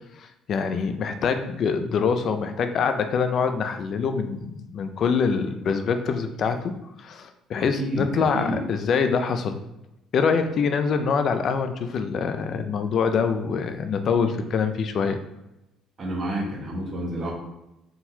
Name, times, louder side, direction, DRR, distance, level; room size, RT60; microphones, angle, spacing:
voice 1, 0.2-9.6 10.1-15.2, left 5 dB, 40° left, 8 dB, 0.4 m, -25 dB
voice 2, 7.8-8.6 16.0-17.3, right 1 dB, 25° right, -4 dB, 1.3 m, -29 dB
4.4 x 3.8 x 2.7 m, 0.90 s
cardioid pair, 165°, 0 cm